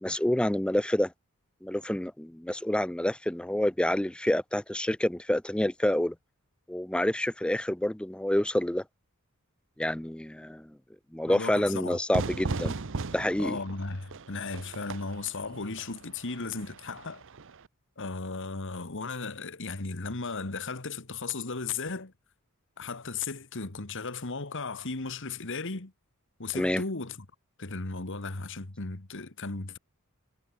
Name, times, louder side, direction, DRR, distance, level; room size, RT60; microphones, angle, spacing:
voice 1, 0.0-1.1 1.6-6.1 6.7-8.8 9.8-10.8 11.1-12.8 13.1-13.6 26.5-26.8, left 1 dB, 5° left, 0.5 m, -28 dB
voice 2, 11.3-12.0 13.4-17.2 18.0-22.1 22.8-25.9 26.4-27.3 27.6-29.8, left 4 dB, 60° left, 1.8 m, -36 dB
Fire / Fireworks, 12.1-17.7, right 3 dB, 60° right, 0.9 m, -37 dB
head